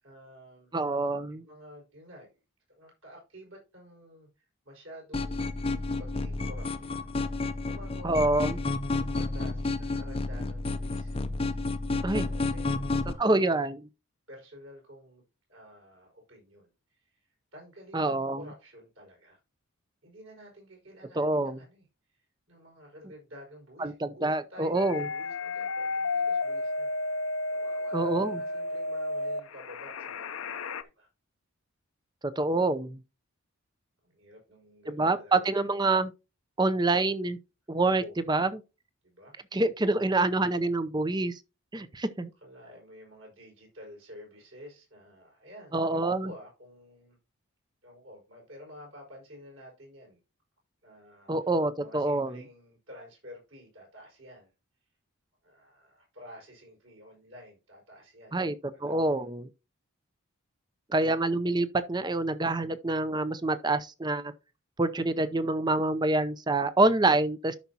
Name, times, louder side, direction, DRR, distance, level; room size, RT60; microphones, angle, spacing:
voice 1, 0.0-0.7 1.4-2.4 2.8-8.7 9.1-11.2 11.9-13.5 14.3-15.2 15.5-16.7 17.5-19.4 20.0-21.9 22.5-26.9 27.5-30.7 31.0-31.1 34.0-35.7 38.0-38.2 39.0-39.3 42.4-47.2 47.8-50.2 50.8-51.3 51.8-54.5 55.4-58.4 58.7-59.1, equal, 60° right, 5.4 m, -50 dB
voice 2, 0.7-1.4 8.0-8.6 12.0-12.3 13.2-13.8 17.9-18.4 21.1-21.6 23.8-25.1 27.9-28.4 32.2-33.0 34.9-36.1 36.6-37.4 37.7-38.6 39.5-41.4 41.7-42.3 45.7-46.3 51.3-52.4 58.3-58.5 58.8-59.5 60.9-64.3 64.8-67.6, right 2 dB, 20° right, 0.6 m, -26 dB
sound 1, 5.1-13.1, left 3 dB, 25° left, 0.6 m, -31 dB
sound 2, 24.7-30.8, left 2 dB, 75° left, 0.7 m, -32 dB
13.0 x 5.9 x 2.8 m
head